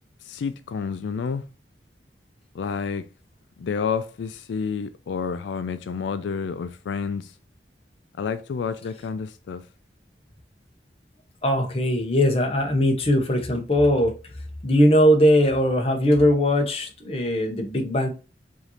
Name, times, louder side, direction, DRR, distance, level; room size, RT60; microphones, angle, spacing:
voice 1, 0.2-1.4 2.5-3.0 3.6-7.3 8.2-9.6, left 6 dB, 90° left, 0.4 m, -29 dB
voice 2, 11.4-14.1 14.6-18.1, equal, 35° left, 0.8 m, -20 dB
4.9 x 2.7 x 2.8 m
head